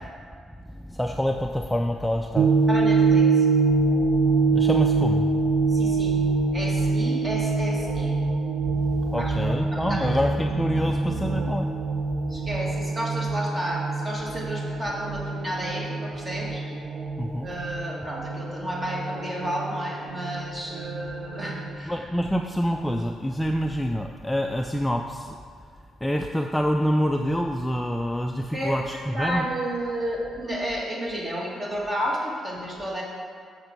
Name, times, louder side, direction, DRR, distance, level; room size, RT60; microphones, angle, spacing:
voice 1, 0.7-2.5 4.5-5.4 5.9-6.0 8.7-12.0 17.2-17.5 21.9-25.4 26.0-29.4, equal, 5° left, 3 dB, 0.4 m, -26 dB
sound 1, 2.3-21.8, right 4 dB, 45° right, 0.6 m, -25 dB
voice 2, 2.7-3.5 5.7-6.2 6.5-8.1 9.2-10.5 12.3-16.6 17.4-22.1 28.5-33.0, equal, 25° right, -3 dB, 1.9 m, -31 dB
6.6 x 6.0 x 5.2 m, 2.1 s
cardioid pair, 90°, 0 cm